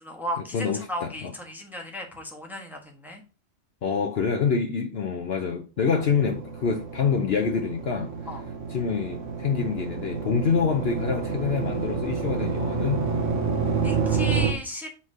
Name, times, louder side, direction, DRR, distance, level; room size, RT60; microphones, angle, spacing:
voice 1, 0.0-3.2 8.3-8.4 13.8-14.9, left 1 dB, ahead, 1.1 m, -35 dB
voice 2, 0.5-1.3 3.8-8.3 8.7-13.1, left 6 dB, 55° left, 0.8 m, -26 dB
sound 1, 5.8-14.5, right 5 dB, 65° right, 1.3 m, -29 dB
5.7 x 3.2 x 5.4 m
omnidirectional pair, 1.4 m